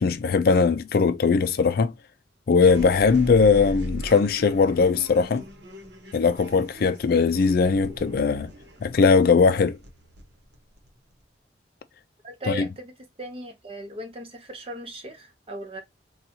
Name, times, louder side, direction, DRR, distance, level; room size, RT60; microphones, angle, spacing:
voice 1, 0.0-1.9 2.5-5.4 6.1-8.5 8.8-9.8 12.5-12.6, left 5 dB, 55° left, 0.4 m, -20 dB
sound 1, 2.6-11.2, equal, 75° right, 1.0 m, -40 dB
voice 2, 12.2-15.8, right 2 dB, 30° right, 0.8 m, -38 dB
4.1 x 2.3 x 2.7 m
head